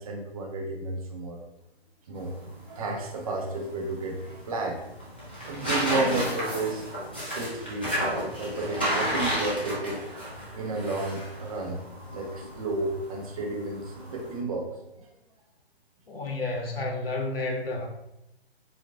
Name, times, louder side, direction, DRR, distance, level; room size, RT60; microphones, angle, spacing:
voice 1, 0.0-1.5 2.1-2.4 2.7-4.2 4.5-4.8 5.5-6.8 7.3-8.0 8.4-10.2 10.5-11.8 12.1-15.1, right 2 dB, 35° right, 2 dB, 0.8 m, -32 dB
sound 1, 2.2-14.4, equal, 10° left, 0.3 m, -33 dB
voice 2, 16.1-17.9, left 2 dB, 65° left, 1 dB, 1.1 m, -31 dB
4.7 x 3.8 x 2.5 m, 0.89 s
figure-of-eight pair, 130°, 32 cm